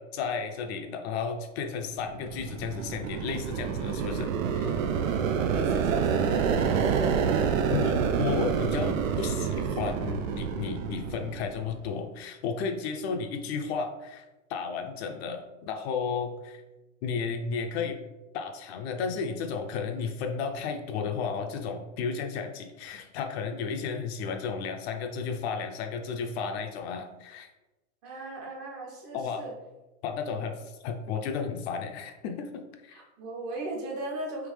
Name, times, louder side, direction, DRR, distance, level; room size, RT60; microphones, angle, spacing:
voice 1, 0.0-4.7 7.7-14.2 14.5-16.6 17.0-18.0 18.3-27.5 29.1-29.4 30.0-33.0, left 5 dB, 55° left, 4 dB, 0.5 m, -33 dB
sound 1, 2.0-11.8, right 6 dB, 80° right, 0.5 m, -28 dB
voice 2, 5.1-6.8 28.0-29.5 30.2-30.4 32.9-34.5, right 2 dB, 35° right, -2 dB, 1.0 m, -38 dB
3.5 x 3.0 x 3.2 m, 1.1 s
supercardioid pair, 135°, 39 cm